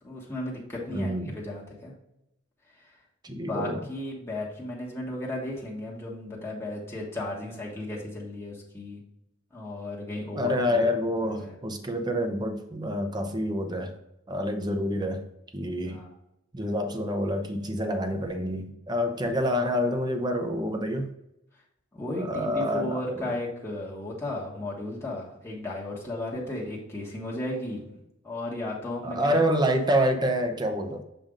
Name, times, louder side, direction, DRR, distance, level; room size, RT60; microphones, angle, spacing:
voice 1, 0.0-1.9 2.8-2.9 3.3-9.0 9.5-10.8 11.3-11.6 15.8-16.1 21.9-28.0 28.2-29.4, left 1 dB, 15° left, -5 dB, 1.3 m, -35 dB
voice 2, 0.9-1.3 3.2-3.8 10.3-13.9 14.3-15.3 15.5-16.1 16.5-21.1 22.2-23.3 29.0-31.0, equal, 20° right, 6 dB, 0.6 m, -27 dB
7.3 x 2.5 x 5.0 m, 0.83 s
head